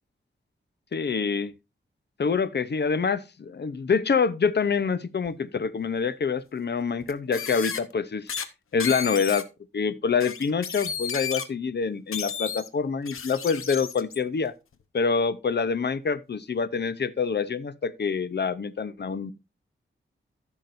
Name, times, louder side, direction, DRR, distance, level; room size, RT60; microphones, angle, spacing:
voice 1, 0.9-1.5 2.2-8.3 8.7-9.5 9.7-14.5 14.9-19.3, left 5 dB, 55° left, 0.8 m, -26 dB
sound 1, 5.3-5.4 7.0-7.8 8.3-8.4 8.8-9.4 10.2-11.4 12.1-12.7 13.0-14.2, left 7 dB, 90° left, 0.9 m, -33 dB
14.5 x 6.1 x 2.6 m
wide cardioid pair, 95°, 21 cm